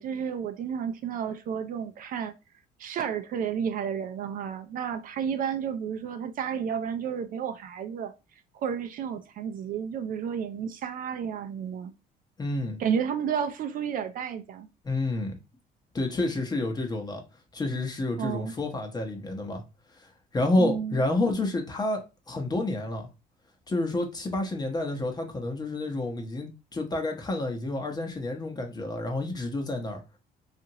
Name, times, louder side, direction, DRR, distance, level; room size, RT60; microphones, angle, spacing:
voice 1, 0.0-2.3 2.8-8.1 8.5-11.9 12.8-14.7 18.2-18.5 20.6-21.0, right 7 dB, 55° right, 0.4 m, -31 dB
voice 2, 12.4-12.8 14.8-15.4 15.9-17.2 17.5-19.6 20.3-23.1 23.7-30.0, left 2 dB, 25° left, 0.8 m, -29 dB
2.8 x 2.5 x 2.8 m
cardioid pair, 110°, 17 cm